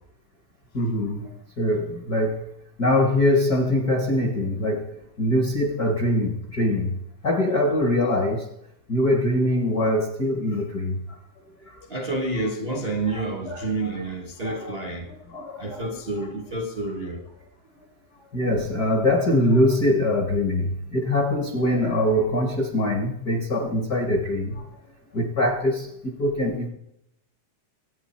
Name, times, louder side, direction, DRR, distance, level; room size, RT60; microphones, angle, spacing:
voice 1, 0.7-2.4 2.8-4.9 5.2-6.9 7.2-8.5 8.9-11.0 13.0-13.7 14.0-14.1 14.4-14.8 15.3-15.9 16.2-16.3 18.3-24.7 25.1-26.7, left 1 dB, 50° left, 1.1 m, -23 dB
voice 2, 11.9-15.1 15.6-17.2, right 2 dB, 45° right, 0.7 m, -29 dB
25.0 x 8.9 x 4.3 m
omnidirectional pair, 3.7 m